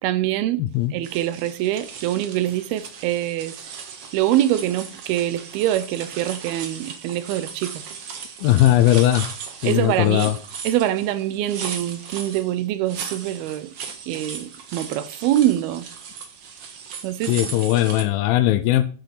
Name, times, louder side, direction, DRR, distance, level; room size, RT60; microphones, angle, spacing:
voice 1, 0.0-0.6 0.9-3.6 4.1-7.8 9.6-10.3 10.6-13.7 14.1-15.9 17.0-17.3, right 13 dB, 80° right, 2.5 m, -24 dB
voice 2, 0.6-0.9 8.4-9.3 9.6-10.4 17.3-18.8, left 14 dB, 80° left, 2.3 m, -19 dB
sound 1, 1.0-18.0, right 6 dB, 60° right, 1.6 m, -37 dB
10.5 x 6.8 x 5.8 m
omnidirectional pair, 4.6 m